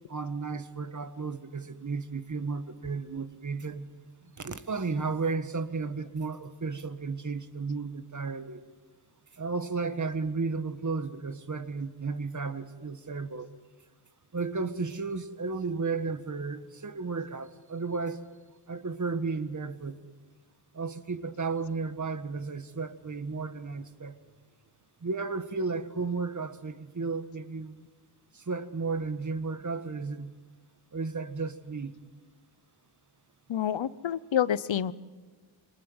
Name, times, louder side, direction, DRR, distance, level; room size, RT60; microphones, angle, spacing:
voice 1, 0.1-3.9 4.4-8.6 9.4-13.5 14.3-18.2 18.7-20.0 20.7-24.1 25.0-27.8 28.3-30.3 30.9-31.9, right 4 dB, 40° right, 11 dB, 1.6 m, -33 dB
voice 2, 33.5-34.9, left 10 dB, 75° left, 18 dB, 0.9 m, -28 dB
27.0 x 26.0 x 8.0 m, 1.4 s
wide cardioid pair, 155°, 46 cm